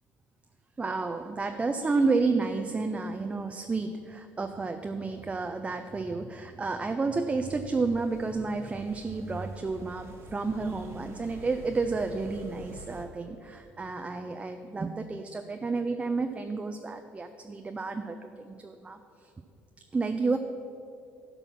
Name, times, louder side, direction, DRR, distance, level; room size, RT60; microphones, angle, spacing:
voice 1, 0.8-19.3 19.9-20.4, right 3 dB, 20° right, 6 dB, 0.5 m, -31 dB
sound 1, 7.4-13.0, right 1 dB, 50° right, 1.3 m, -48 dB
11.5 x 5.4 x 5.9 m, 2.6 s
supercardioid pair, 80°, 6 cm